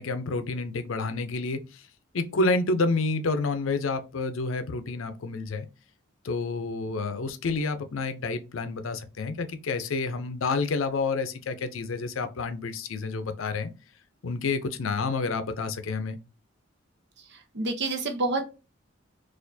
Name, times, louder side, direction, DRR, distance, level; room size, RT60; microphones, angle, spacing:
voice 1, 0.0-1.8 2.1-5.7 6.2-13.7 14.2-16.2, left 3 dB, 75° left, 0.5 m, -29 dB
voice 2, 17.2-18.4, right 2 dB, 55° right, 0.8 m, -29 dB
4.3 x 2.5 x 2.6 m
head